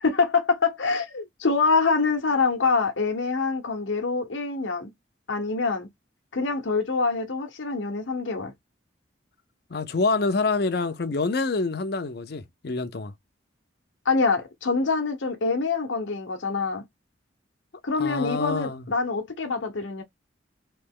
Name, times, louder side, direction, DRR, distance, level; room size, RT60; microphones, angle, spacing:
voice 1, 0.0-4.9 5.3-5.9 6.3-8.5 14.0-16.8 17.8-20.0, left 4 dB, 70° left, 0.9 m, -25 dB
voice 2, 9.7-13.1 18.0-18.9, left 3 dB, 55° left, 0.6 m, -26 dB
3.3 x 3.0 x 3.6 m
head